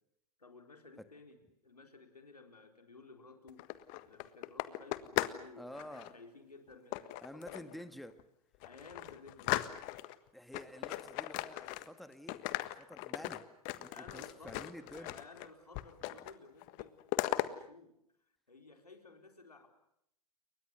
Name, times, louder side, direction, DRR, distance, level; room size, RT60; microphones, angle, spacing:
voice 1, 0.4-7.9 8.6-9.7 13.9-17.0 17.4-18.0 18.5-19.7, left 3 dB, 90° left, 5 dB, 4.4 m, -56 dB
sound 1, 3.5-5.4 5.7-6.1 6.9-7.7 8.2-8.3 8.6-10.2 10.5-12.0 12.3-15.5 15.7-16.4 16.6-17.5, left 18 dB, 45° left, 1.5 m, -38 dB
voice 2, 5.6-6.1 7.2-8.1 10.3-12.4 12.8-13.4 13.8-15.1, equal, ahead, 10 dB, 1.6 m, -49 dB
29.5 x 23.0 x 6.8 m, 0.74 s
figure-of-eight pair, 100°, 19 cm